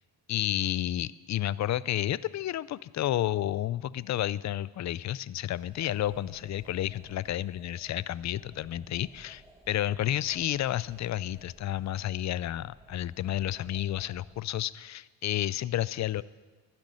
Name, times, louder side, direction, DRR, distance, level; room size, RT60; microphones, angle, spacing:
voice 1, 0.3-16.2, left 13 dB, 40° left, 20 dB, 0.4 m, -31 dB
sound 1, 5.3-14.4, right 1 dB, 5° right, 1.5 m, -57 dB
11.5 x 10.5 x 9.8 m, 1.4 s
cardioid pair, 105°, 45 cm